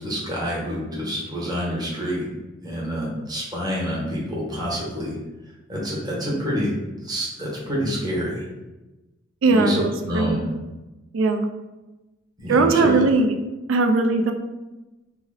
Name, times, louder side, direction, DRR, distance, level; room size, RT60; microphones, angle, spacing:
voice 1, 0.0-2.3 2.6-5.2 5.7-6.7 7.0-8.4 9.5-10.4 12.4-12.9, equal, 20° right, -6 dB, 0.9 m, -27 dB
voice 2, 9.4-10.4 11.1-11.5 12.5-13.3 13.7-14.3, right 3 dB, 85° right, 6 dB, 0.4 m, -19 dB
2.7 x 2.0 x 3.8 m, 1.1 s
head